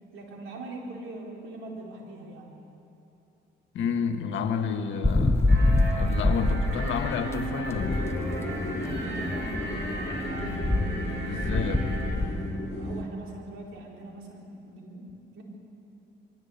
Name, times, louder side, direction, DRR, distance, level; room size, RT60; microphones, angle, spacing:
voice 1, 0.1-2.5 8.9-10.3 12.8-15.0 15.3-15.4, right 2 dB, 80° right, -1 dB, 4.3 m, -42 dB
voice 2, 3.7-8.2 11.2-11.9, left 6 dB, 75° left, 7 dB, 1.6 m, -30 dB
sound 1, 5.0-12.3, left 2 dB, 15° left, 1.4 m, -25 dB
sound 2, 5.5-12.1, right 2 dB, 65° right, 6.6 m, -36 dB
sound 3, 7.7-13.0, left 1 dB, 35° left, 3.7 m, -34 dB
23.0 x 16.5 x 8.7 m, 2.8 s
cardioid pair, 90°, 20 cm